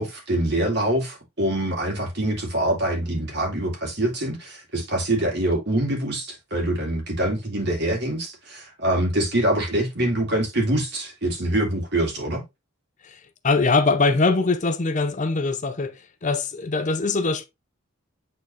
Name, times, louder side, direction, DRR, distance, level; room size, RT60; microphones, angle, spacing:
voice 1, 0.0-12.4, right 1 dB, 55° right, 2.7 m, -25 dB
voice 2, 13.0-17.5, left 3 dB, 40° left, 0.6 m, -22 dB
8.4 x 4.0 x 3.2 m
head